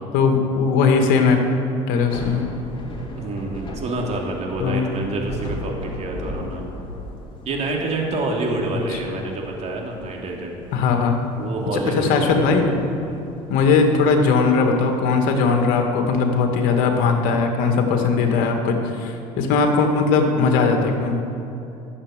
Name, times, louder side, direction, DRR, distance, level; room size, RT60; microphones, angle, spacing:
voice 1, 0.1-1.4 1.9-2.4 4.6-4.9 10.7-11.2 11.7-12.8 13.5-21.2, left 4 dB, 70° left, 3 dB, 2.1 m, -19 dB
Thunder / Rain, 1.9-15.1, left 1 dB, 35° left, 3.1 m, -37 dB
voice 2, 3.2-6.6 7.4-10.6 11.4-12.7 13.0-13.3, right 2 dB, 45° right, 0 dB, 3.0 m, -27 dB
12.5 x 7.7 x 9.0 m, 2.8 s
supercardioid pair, 85°, 16 cm